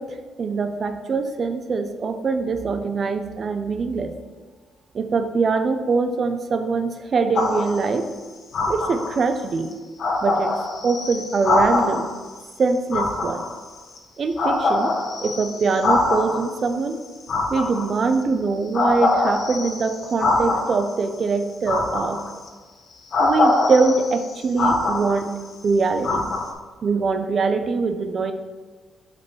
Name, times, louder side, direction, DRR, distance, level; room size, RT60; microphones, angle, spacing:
voice 1, 0.0-4.1 4.9-8.1 8.7-9.7 10.2-10.5 10.8-12.1 12.6-13.4 14.2-14.9 15.2-17.0 17.5-22.2 23.2-25.3 25.6-26.3 26.8-28.3, right 4 dB, 45° right, 8 dB, 0.5 m, -23 dB
sound 1, 7.3-7.9 8.5-9.3 9.7-9.8 10.0-12.2 12.9-14.0 14.4-16.5 17.2-18.2 18.7-20.9 21.7-22.5 23.1-25.5 26.0-26.5, left 2 dB, 60° left, 1.2 m, -23 dB
5.8 x 5.1 x 4.6 m, 1.4 s
cardioid pair, 90°, 0 cm